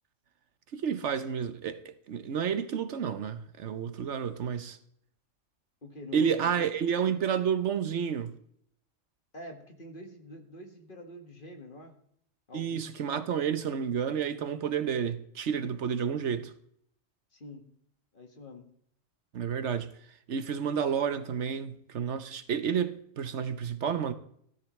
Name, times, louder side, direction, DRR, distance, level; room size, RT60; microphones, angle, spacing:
voice 1, 0.7-4.8 6.1-8.3 12.5-16.5 19.3-19.9 20.3-24.1, right 7 dB, 65° right, 1.1 m, -30 dB
voice 2, 5.8-6.6 9.3-12.0 12.5-12.8 17.3-17.7 18.1-18.6, left 1 dB, 45° left, 1.8 m, -46 dB
16.0 x 13.5 x 3.2 m
omnidirectional pair, 1.3 m